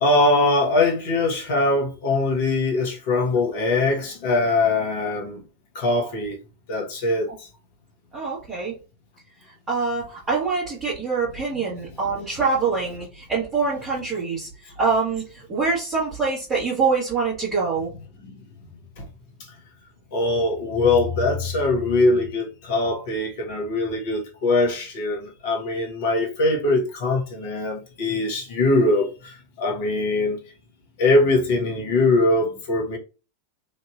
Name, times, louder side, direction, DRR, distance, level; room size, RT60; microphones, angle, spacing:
voice 1, 0.0-5.4 5.7-6.4 6.7-7.5 18.2-18.4 19.0-19.1 20.1-30.4 31.0-33.0, left 2 dB, 50° left, 1.2 m, -22 dB
voice 2, 8.1-8.7 9.7-17.9, right 4 dB, 15° right, 1.4 m, -25 dB
3.1 x 2.7 x 2.4 m
figure-of-eight pair, 90°, 0 cm